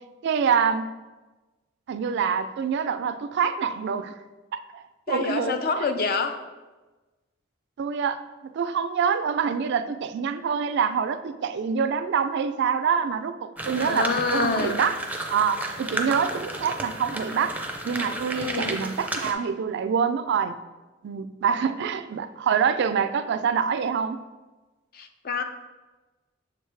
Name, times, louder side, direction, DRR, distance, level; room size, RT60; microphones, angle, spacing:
voice 1, 0.2-0.9 1.9-4.1 4.7-4.8 5.1-5.9 7.8-14.9 15.3-17.6 17.8-20.6 21.0-24.2, right 6 dB, 60° right, 10 dB, 0.3 m, -26 dB
voice 2, 5.1-6.4 13.8-14.8 18.4-18.8 24.9-25.4, left 4 dB, 50° left, 8 dB, 0.5 m, -27 dB
sound 1, 13.6-19.3, right 1 dB, 10° right, 0.5 m, -32 dB
6.9 x 4.7 x 3.3 m, 1.2 s
head